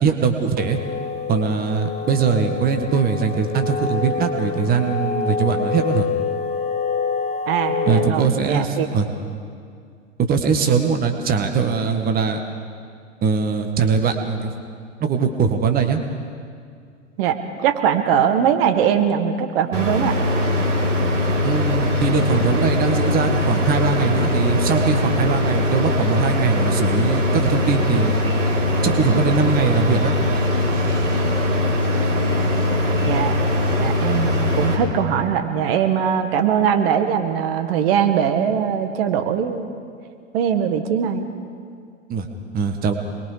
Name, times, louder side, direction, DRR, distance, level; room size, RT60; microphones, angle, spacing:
voice 1, 0.0-0.8 1.3-6.1 7.9-9.1 10.3-12.4 13.2-14.5 15.0-16.0 21.4-28.2 28.8-30.1 42.1-42.3 42.5-42.9, right 5 dB, 25° right, 5 dB, 1.6 m, -21 dB
sound 1, 0.6-8.1, left 5 dB, 15° left, 0.9 m, -26 dB
voice 2, 7.5-8.9 17.2-20.2 33.0-33.3 33.8-39.7 40.3-41.3, right 8 dB, 45° right, 7 dB, 1.8 m, -21 dB
sound 2, 19.7-34.8, left 1 dB, 75° right, 6.3 m, -21 dB
27.5 x 21.5 x 5.1 m, 2.3 s
figure-of-eight pair, 100°, 39 cm